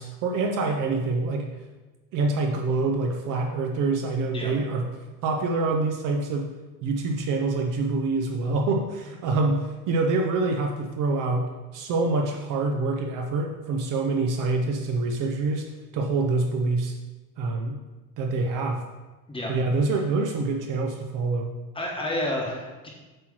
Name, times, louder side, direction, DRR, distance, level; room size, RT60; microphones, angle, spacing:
voice 1, 0.0-1.5 2.1-4.9 5.2-6.5 6.8-15.7 15.9-16.9 17.4-17.8 18.2-18.8 19.5-21.5, right 3 dB, 45° right, 3 dB, 0.7 m, -26 dB
voice 2, 21.7-22.9, left 1 dB, 10° left, -1 dB, 1.1 m, -30 dB
7.6 x 3.1 x 6.1 m, 1.2 s
cardioid pair, 150°, 46 cm